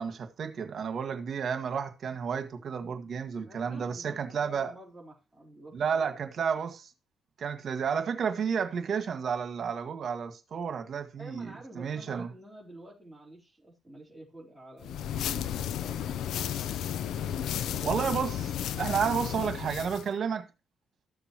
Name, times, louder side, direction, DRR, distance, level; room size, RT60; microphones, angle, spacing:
voice 1, 0.0-4.7 5.7-6.9 7.4-12.3 17.8-18.4 18.8-20.4, right 6 dB, 55° right, 1.8 m, -31 dB
voice 2, 3.4-6.3 11.2-16.3 17.1-18.2 18.7-19.0 19.2-19.3, right 1 dB, 5° right, 4.0 m, -49 dB
sound 1, 14.8-20.1, left 10 dB, 75° left, 0.5 m, -33 dB
14.0 x 6.8 x 3.0 m
cardioid pair, 90°, 0 cm